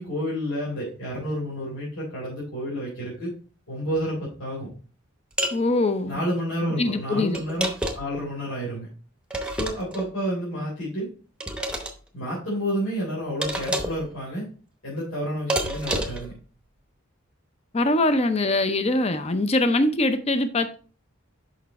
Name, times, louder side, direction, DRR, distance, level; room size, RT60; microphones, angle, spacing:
voice 1, 0.0-3.3 3.7-4.7 6.1-7.7 7.9-8.9 9.6-11.1 12.1-14.5 14.8-16.3, equal, 90° left, 3.7 m, -30 dB
sound 1, 5.4-5.6 7.3-8.2 9.3-10.1 11.4-11.9 13.4-14.1 15.5-16.3, right 1 dB, 5° right, 0.8 m, -28 dB
voice 2, 5.5-6.2 6.8-7.4 17.7-20.8, left 2 dB, 30° left, 0.6 m, -23 dB
6.5 x 5.6 x 4.1 m
head